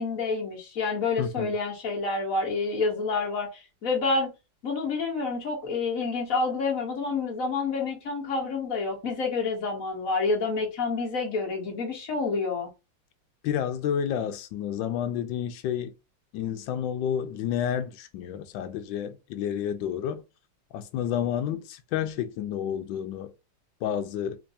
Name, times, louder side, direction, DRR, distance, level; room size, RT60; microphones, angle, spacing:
voice 1, 0.0-3.5 3.8-4.3 4.6-12.7, left 4 dB, 50° left, 1.5 m, -28 dB
voice 2, 1.2-1.5 13.4-15.9 16.3-20.2 20.7-23.3 23.8-24.4, left 9 dB, 75° left, 1.3 m, -30 dB
4.3 x 2.6 x 2.8 m
omnidirectional pair, 2.1 m